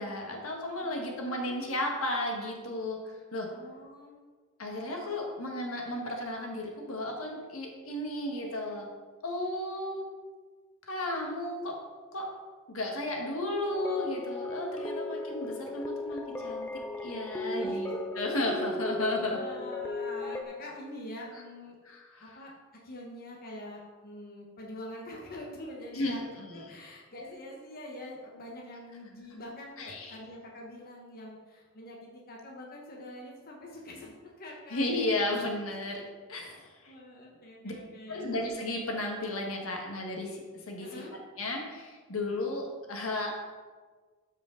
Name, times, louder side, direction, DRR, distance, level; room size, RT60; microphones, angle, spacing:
voice 1, 0.0-3.5 4.6-8.9 9.2-10.0 10.9-11.8 12.1-12.3 12.7-16.7 17.0-19.4 21.8-22.3 25.9-26.8 29.8-30.2 34.7-36.0 36.3-36.9 37.6-37.7 38.1-40.4 40.7-40.9 41.4-43.4, left 1 dB, 75° left, 1 dB, 1.5 m, -34 dB
voice 2, 0.8-1.8 3.5-4.2 17.5-17.9 19.3-21.8 22.2-22.5 22.8-26.2 26.5-35.1 36.5-38.3 40.8-41.1, left 1 dB, 45° left, -2 dB, 1.2 m, -45 dB
sound 1, 13.7-20.4, left 2 dB, 10° left, 0.5 m, -36 dB
13.0 x 5.0 x 3.8 m, 1.4 s
head